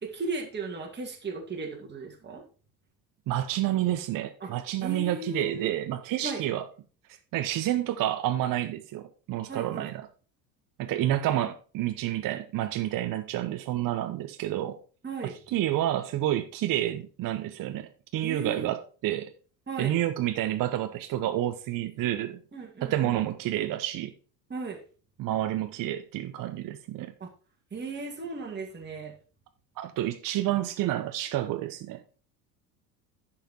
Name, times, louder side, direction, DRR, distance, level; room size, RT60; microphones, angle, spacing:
voice 1, 0.0-2.4 4.4-4.5 4.8-5.7 6.2-6.4 9.5-9.9 15.0-15.4 18.2-18.7 19.7-19.9 22.5-23.2 24.5-24.8 27.2-27.3 27.7-29.1, right 3 dB, 20° right, 2.5 m, -36 dB
voice 2, 3.3-6.6 7.3-10.1 10.8-14.8 15.5-19.3 19.8-22.4 22.8-24.1 25.2-27.1 29.8-32.0, right 13 dB, 40° right, 0.9 m, -29 dB
10.0 x 5.9 x 4.5 m
hypercardioid pair, 65°, 49 cm